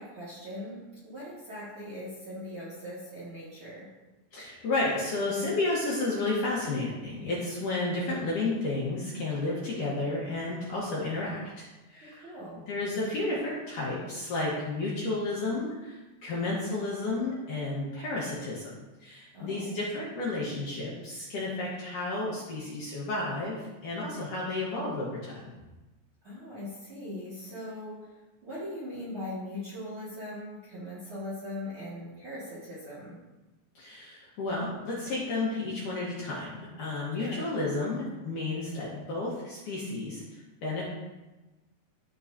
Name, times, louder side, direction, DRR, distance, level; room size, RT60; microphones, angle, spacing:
voice 1, 0.0-3.9 12.2-12.6 19.3-19.8 26.2-28.1 28.4-33.2 37.2-37.4, left 1 dB, 40° right, -9 dB, 2.1 m, -40 dB
voice 2, 4.3-18.7 19.0-25.5 33.8-40.8, left 2 dB, 65° left, -6 dB, 2.3 m, -32 dB
14.0 x 4.8 x 2.8 m, 1.1 s
omnidirectional pair, 5.0 m